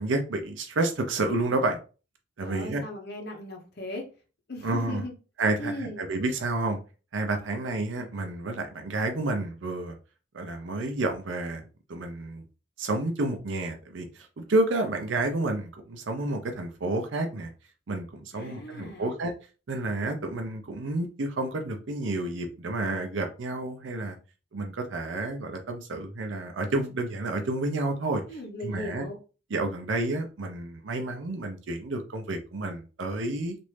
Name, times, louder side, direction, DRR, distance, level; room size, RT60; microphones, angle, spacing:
voice 1, 0.0-1.8 2.4-2.8 4.6-5.0 5.4-6.8 7.1-9.9 10.3-11.6 11.9-12.4 12.8-17.5 17.9-19.3 19.7-24.2 24.5-28.2 28.6-29.1 29.5-33.6, right 2 dB, 70° right, 0.6 m, -30 dB
voice 2, 2.4-4.1 4.5-5.1 5.6-6.0 18.3-19.1 28.3-29.2, left 1 dB, 55° left, 0.8 m, -37 dB
3.1 x 2.5 x 3.2 m
head